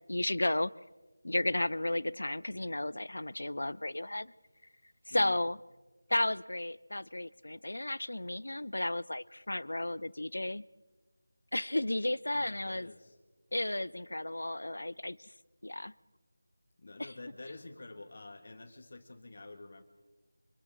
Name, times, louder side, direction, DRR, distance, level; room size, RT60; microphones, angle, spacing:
voice 1, 0.1-0.7 1.2-4.3 5.1-5.6 6.1-10.6 11.5-12.9 13.5-15.3 15.6-15.9 17.0-17.1, left 1 dB, 80° left, 20 dB, 0.5 m, -33 dB
voice 2, 12.3-13.2 16.8-19.8, left 2 dB, 50° left, 7 dB, 1.8 m, -48 dB
27.0 x 26.0 x 3.8 m, 1.3 s
figure-of-eight pair, 170°, 0 cm